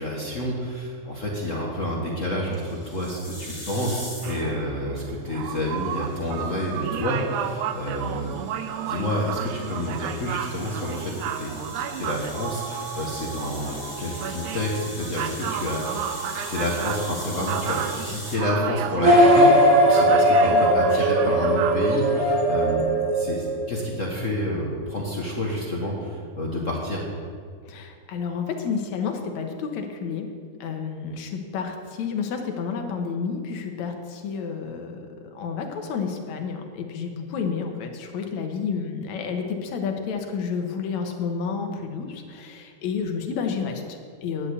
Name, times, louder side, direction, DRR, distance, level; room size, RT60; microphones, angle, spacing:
voice 1, 0.0-8.5 8.8-27.0, left 1 dB, 45° left, -3 dB, 1.0 m, -29 dB
sound 1, 2.5-4.5 5.6-18.4, left 1 dB, 10° left, 1.9 m, -41 dB
sound 2, 4.2-22.2, right 9 dB, 85° right, 2.0 m, -33 dB
sound 3, 19.0-23.8, equal, 35° right, 0.5 m, -18 dB
voice 2, 27.7-30.3 30.6-44.5, left 6 dB, 70° left, 4 dB, 2.4 m, -30 dB
10.5 x 7.1 x 8.3 m, 2.1 s
omnidirectional pair, 3.5 m